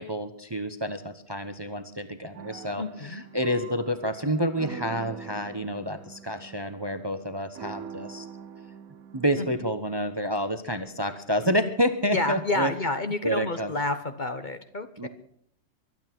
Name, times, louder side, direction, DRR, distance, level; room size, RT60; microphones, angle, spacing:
voice 1, 0.0-8.3 9.1-12.7 13.2-13.7 15.0-15.1, equal, 20° right, 10 dB, 0.9 m, -29 dB
sound 1, 2.3-9.4, right 7 dB, 85° right, 1.3 m, -43 dB
voice 2, 2.8-3.2 9.4-9.5 12.1-15.1, left 2 dB, 35° left, 9 dB, 1.1 m, -29 dB
23.5 x 9.4 x 6.0 m, 0.65 s
omnidirectional pair, 1.5 m